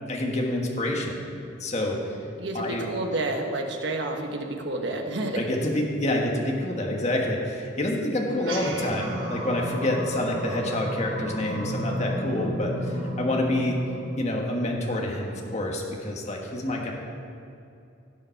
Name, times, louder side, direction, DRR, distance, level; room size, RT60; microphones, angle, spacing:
voice 1, 0.1-1.2 1.6-2.2 2.5-2.8 5.3-13.8 14.2-16.9, left 1 dB, 35° left, 0 dB, 1.4 m, -27 dB
voice 2, 2.4-5.4, right 2 dB, 65° right, 3 dB, 1.2 m, -29 dB
sound 1, 8.3-15.0, right 1 dB, 80° right, 2.9 m, -32 dB
15.5 x 6.7 x 5.8 m, 2.6 s
head